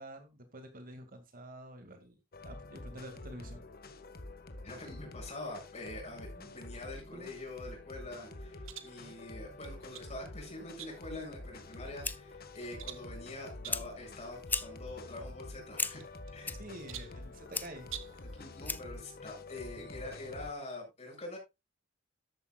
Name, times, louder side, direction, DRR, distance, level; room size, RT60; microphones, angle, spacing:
voice 1, 0.0-2.2 2.4-3.7 6.3-6.6 7.1-7.3 9.0-9.2 16.6-18.2, right 1 dB, 45° right, 2.2 m, -49 dB
sound 1, 2.3-20.5, left 2 dB, 50° left, 1.5 m, -48 dB
voice 2, 4.6-16.6 18.3-21.4, left 2 dB, 35° left, 7.5 m, -45 dB
sound 2, 8.6-9.0 9.6-10.1 10.8-11.2 11.7-12.2 12.8-13.1 13.6-13.9 14.5-14.7 15.0-15.1 16.0-16.5 16.9-17.2 17.8-18.2, right 11 dB, 90° right, 1.4 m, -47 dB
Fire, 11.6-19.1, left 3 dB, 10° left, 0.6 m, -41 dB
13.5 x 10.5 x 2.4 m
head